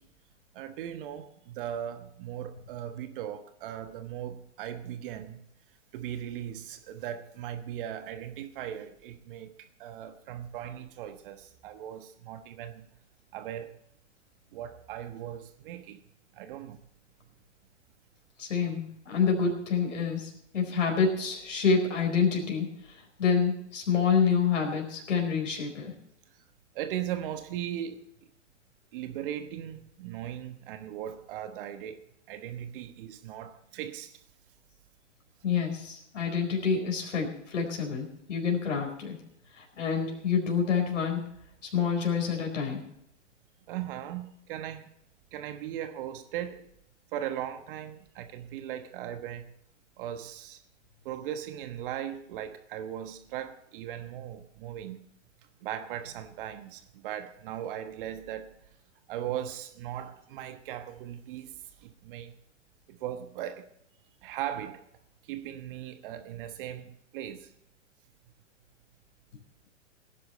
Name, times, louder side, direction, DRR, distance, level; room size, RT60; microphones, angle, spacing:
voice 1, 0.5-5.5 5.9-12.9 13.3-13.8 14.5-16.0 16.3-16.8 26.7-28.1 28.9-32.0 32.3-34.2 43.7-44.9 45.3-46.7 47.1-49.5 50.0-50.6 51.0-55.0 55.6-58.5 59.1-61.5 61.8-62.3 62.9-63.7 64.2-64.8 65.2-67.5, right 10 dB, 45° right, 1.3 m, -38 dB
voice 2, 18.4-25.9 35.4-39.2 39.5-41.2 41.7-42.8, left 6 dB, 70° left, 4.6 m, -27 dB
18.5 x 10.5 x 4.3 m
hypercardioid pair, 120°, 38 cm